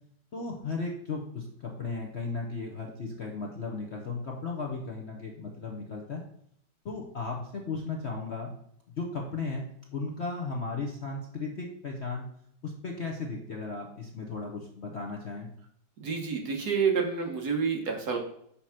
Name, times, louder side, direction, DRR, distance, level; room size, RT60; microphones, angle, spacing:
voice 1, 0.3-6.2 6.8-8.5 9.0-9.7 9.9-12.3 12.6-15.5, left 4 dB, 50° left, 0 dB, 0.9 m, -35 dB
voice 2, 16.0-18.2, right 5 dB, 60° right, 2 dB, 1.5 m, -28 dB
5.8 x 4.8 x 5.8 m, 0.69 s
omnidirectional pair, 2.1 m